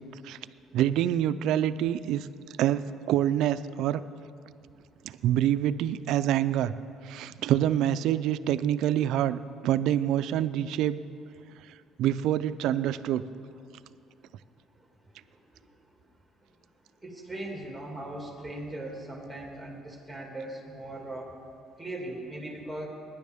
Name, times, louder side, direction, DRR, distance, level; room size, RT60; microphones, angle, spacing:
voice 1, 0.7-2.3 2.6-2.8 3.1-4.0 5.0-6.7 7.0-11.0 12.0-13.2, right 11 dB, 75° right, 14 dB, 0.4 m, -26 dB
voice 2, 17.0-21.3 21.8-22.9, right 1 dB, ahead, 0 dB, 2.3 m, -39 dB
18.5 x 10.0 x 3.5 m, 2.4 s
cardioid pair, 130°, 0 cm